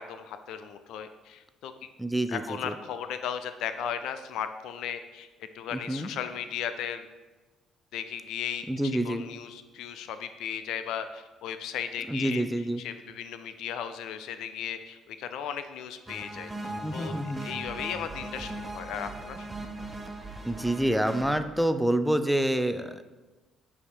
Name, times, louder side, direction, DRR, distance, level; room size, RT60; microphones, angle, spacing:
voice 1, 0.0-1.7 2.3-5.3 5.5-7.1 7.9-12.4 12.8-19.5, left 8 dB, 65° left, 10 dB, 0.3 m, -36 dB
voice 2, 2.0-2.7 5.7-6.1 8.7-9.2 12.1-12.8 16.8-17.5 20.4-23.0, right 1 dB, ahead, 9 dB, 0.5 m, -27 dB
sound 1, 16.1-21.4, right 2 dB, 25° right, 0.8 m, -39 dB
7.9 x 2.9 x 4.9 m, 1.2 s
hypercardioid pair, 50°, 0 cm